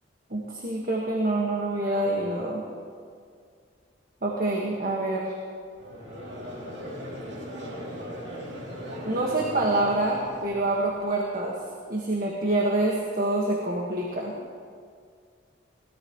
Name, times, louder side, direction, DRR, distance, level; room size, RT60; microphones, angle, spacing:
voice 1, 0.3-2.6 4.2-5.3 9.0-11.6 11.9-14.3, right 2 dB, 50° right, -2 dB, 1.7 m, -26 dB
Conversation / Crowd, 5.8-11.1, equal, 65° right, 3.0 m, -38 dB
22.5 x 18.0 x 3.2 m, 2.1 s
head